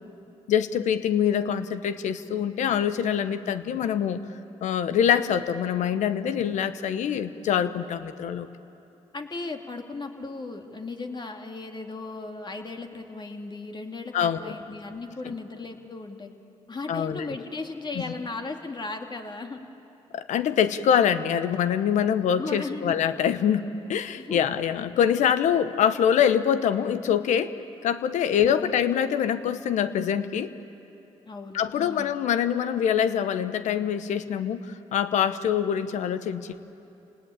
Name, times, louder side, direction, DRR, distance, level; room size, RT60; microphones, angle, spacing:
voice 1, 0.5-4.2 4.6-8.5 14.1-14.6 15.2-15.3 16.9-17.4 17.9-18.0 20.1-27.5 27.8-30.5 31.5-36.6, left 8 dB, 85° left, 11 dB, 1.0 m, -24 dB
voice 2, 9.1-16.3 16.7-19.7 22.1-23.2 24.2-24.6 28.4-28.7 31.2-32.1, left 3 dB, 40° left, 3 dB, 2.6 m, -36 dB
29.0 x 19.0 x 8.8 m, 2.9 s
supercardioid pair, 60°, 12 cm